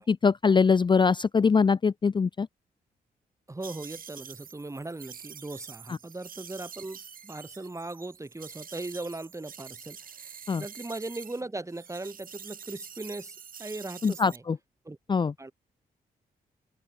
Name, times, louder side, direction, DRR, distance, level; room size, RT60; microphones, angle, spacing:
voice 1, 0.1-2.5 10.5-10.6 14.0-14.6 15.1-15.3, left 5 dB, 30° left, 0.5 m, -22 dB
voice 2, 3.5-14.4 14.8-15.0 15.4-15.5, right 2 dB, 20° right, 2.7 m, -39 dB
sound 1, 3.6-11.4 11.7-14.4, right 7 dB, 60° right, 4.0 m, -46 dB
open air
cardioid pair, 70°, 16 cm